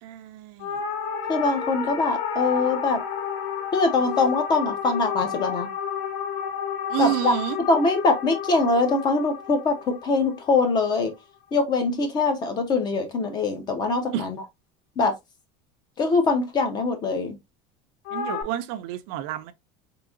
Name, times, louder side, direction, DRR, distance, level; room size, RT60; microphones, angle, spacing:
voice 1, 0.0-0.8 6.9-7.6 14.1-14.3 18.1-19.5, right 13 dB, 60° right, 0.5 m, -29 dB
sound 1, 0.6-11.1 18.0-18.4, left 7 dB, 65° left, 0.8 m, -31 dB
voice 2, 1.3-3.0 3.7-5.7 7.0-7.3 7.7-11.1 11.5-14.4 15.0-15.1 16.0-17.4, left 3 dB, 25° left, 0.7 m, -23 dB
3.8 x 2.8 x 2.5 m
cardioid pair, 170°, 16 cm